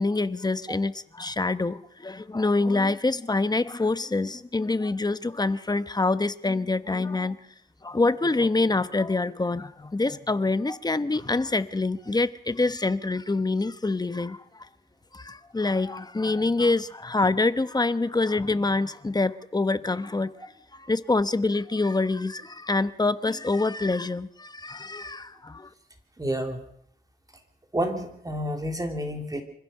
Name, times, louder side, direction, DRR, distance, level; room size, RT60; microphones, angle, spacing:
voice 1, 0.0-7.4 7.8-14.7 15.1-25.7, left 3 dB, 20° left, 1.0 m, -26 dB
voice 2, 26.2-26.6 27.7-29.4, equal, 20° right, 3.3 m, -29 dB
25.0 x 15.5 x 6.7 m
cardioid pair, 80°, 18 cm